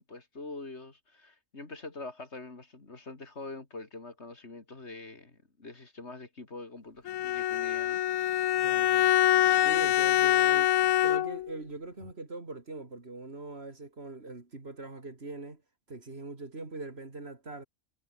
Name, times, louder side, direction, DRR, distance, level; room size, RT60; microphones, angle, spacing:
voice 1, 0.0-8.5, left 3 dB, 55° left, 3.2 m, -45 dB
Bowed string instrument, 7.1-11.5, left 12 dB, 75° left, 1.1 m, -25 dB
voice 2, 8.6-9.1 9.6-10.7 11.0-15.6 15.9-17.6, right 3 dB, 50° right, 3.1 m, -42 dB
omnidirectional pair, 1.4 m